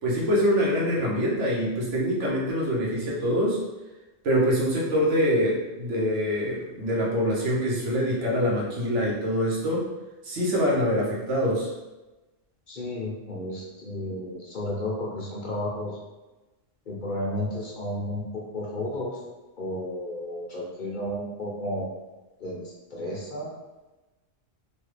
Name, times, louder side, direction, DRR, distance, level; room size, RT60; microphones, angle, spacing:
voice 1, 0.0-3.6 4.2-9.9 10.2-11.7, equal, 85° right, -4 dB, 1.2 m, -25 dB
voice 2, 12.7-16.0 16.9-19.2 19.6-21.9 22.4-23.5, left 1 dB, 50° left, -4 dB, 0.8 m, -32 dB
3.3 x 2.3 x 3.2 m, 1.1 s
omnidirectional pair, 1.2 m